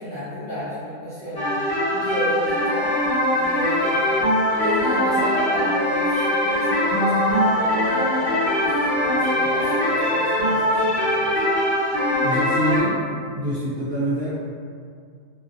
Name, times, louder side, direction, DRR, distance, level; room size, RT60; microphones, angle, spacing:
voice 1, 0.0-4.1 4.6-8.7 9.0-11.4, equal, 40° left, -15 dB, 0.8 m, -32 dB
sound 1, 1.4-12.8, left 1 dB, 65° left, 1.3 m, -21 dB
voice 2, 12.2-13.0 13.3-14.4, equal, 60° right, -10 dB, 0.7 m, -25 dB
2.5 x 2.5 x 2.5 m, 2.2 s
omnidirectional pair, 1.5 m